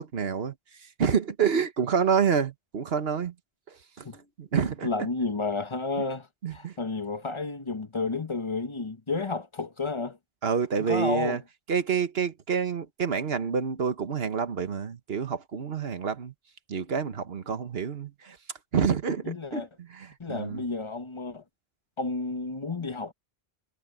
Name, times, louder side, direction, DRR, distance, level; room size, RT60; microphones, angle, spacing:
voice 1, 0.0-3.3 3.7-4.9 6.4-6.8 10.4-11.4 11.7-16.3 16.7-18.4 18.7-20.6, right 6 dB, 75° right, 1.4 m, -28 dB
voice 2, 4.8-6.3 6.5-10.2 10.9-11.4 19.2-19.7 20.2-21.4 22.0-23.1, left 3 dB, 30° left, 1.0 m, -31 dB
omnidirectional pair, 1.1 m